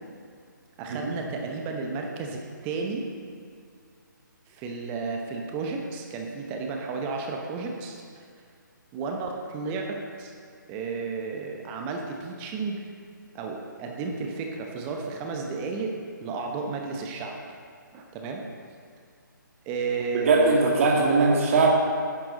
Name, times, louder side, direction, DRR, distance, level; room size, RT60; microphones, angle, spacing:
voice 1, 0.8-3.1 4.5-8.0 8.9-10.3 10.7-12.8 13.3-15.9 16.2-17.4 17.9-18.5 19.7-20.6 21.2-21.4, right 4 dB, 20° right, 2 dB, 0.9 m, -32 dB
voice 2, 20.3-21.7, right 3 dB, 40° right, -1 dB, 2.0 m, -20 dB
10.5 x 10.5 x 3.9 m, 2.2 s
figure-of-eight pair, 150°, 11 cm